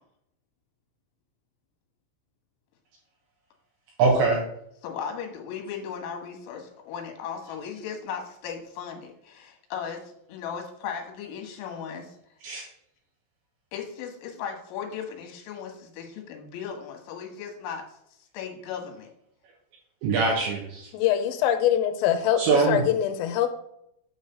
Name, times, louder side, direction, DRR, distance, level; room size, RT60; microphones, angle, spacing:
voice 1, 4.0-4.4 12.4-12.6 20.0-20.9 22.4-22.9, right 4 dB, 75° right, -1 dB, 2.9 m, -23 dB
voice 2, 4.8-12.2 13.7-18.0 18.3-19.1, left 7 dB, 70° left, 3 dB, 3.5 m, -37 dB
voice 3, 20.9-23.5, left 10 dB, 85° left, 7 dB, 3.3 m, -23 dB
9.1 x 3.2 x 6.6 m, 0.74 s
omnidirectional pair, 6.0 m